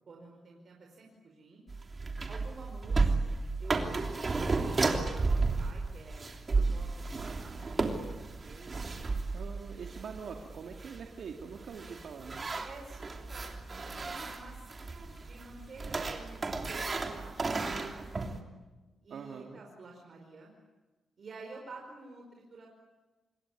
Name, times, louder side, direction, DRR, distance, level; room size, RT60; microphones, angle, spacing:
voice 1, 0.1-1.6 2.3-3.3 3.6-9.1 12.6-13.5 13.8-18.2 19.0-20.5 21.2-22.7, right 3 dB, 55° right, 0 dB, 5.1 m, -51 dB
woodfloor wood parquet cracking, 1.7-18.4, right 3 dB, 35° right, 3.1 m, -33 dB
voice 2, 9.3-12.5 19.1-19.6, right 6 dB, 75° right, 2 dB, 2.2 m, -44 dB
27.0 x 22.0 x 9.8 m, 1.2 s
cardioid pair, 85°, 0 cm